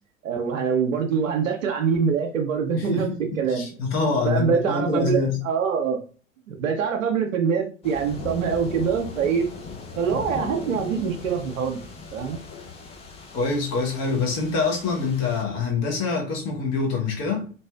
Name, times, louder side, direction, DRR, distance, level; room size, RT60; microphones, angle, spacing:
voice 1, 0.2-3.1 3.4-3.7 4.2-5.2 5.4-6.0 6.5-9.5 10.0-11.8 12.1-12.4, right 6 dB, 75° right, 0.5 m, -24 dB
voice 2, 2.7-5.4 13.3-17.5, left 4 dB, 40° left, 0.8 m, -25 dB
sound 1, 7.8-15.4, left 4 dB, 15° left, 0.4 m, -38 dB
2.6 x 2.3 x 2.2 m
figure-of-eight pair, 80°, 40 cm